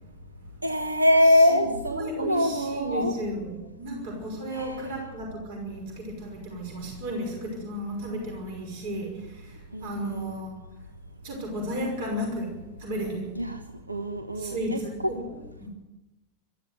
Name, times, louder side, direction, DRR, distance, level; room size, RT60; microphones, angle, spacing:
voice 1, 0.6-3.1 4.5-4.9 9.7-10.3 13.4-13.6 13.9-14.8, left 1 dB, 85° right, 1.3 m, -24 dB
voice 2, 1.3-10.6 11.2-13.3 14.3-15.7, equal, 50° right, 5.5 m, -34 dB
23.0 x 14.0 x 8.2 m
figure-of-eight pair, 90°, 0 cm